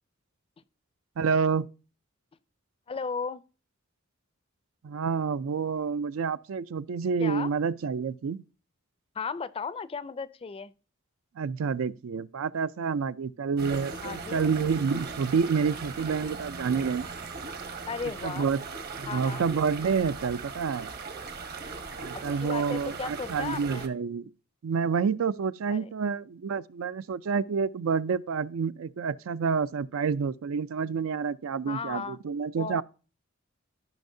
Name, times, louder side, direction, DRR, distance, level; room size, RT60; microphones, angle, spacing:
voice 1, 1.2-1.7 4.8-8.4 11.4-17.1 18.2-18.6 19.0-20.9 22.0-24.2 24.6-32.8, right 5 dB, 90° right, 0.4 m, -28 dB
voice 2, 2.9-3.4 7.2-7.5 9.2-10.7 14.0-14.5 17.9-18.5 19.1-19.5 22.1-23.9 25.7-25.9 31.7-32.2 32.6-32.8, left 5 dB, 25° left, 0.4 m, -35 dB
sound 1, 13.6-23.9, right 4 dB, 50° right, 1.0 m, -39 dB
14.0 x 5.6 x 2.7 m
head